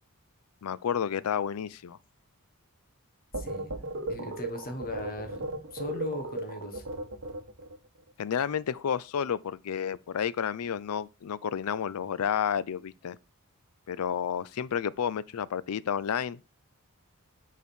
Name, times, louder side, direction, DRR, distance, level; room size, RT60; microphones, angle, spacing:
voice 1, 0.6-2.0 8.2-13.2 13.9-16.4, left 8 dB, 75° left, 0.4 m, -31 dB
voice 2, 3.3-3.8 4.1-5.4 5.7-6.8, left 1 dB, 40° left, 1.5 m, -38 dB
sound 1, 3.3-7.8, right 1 dB, 60° right, 1.3 m, -36 dB
8.2 x 4.1 x 4.4 m
head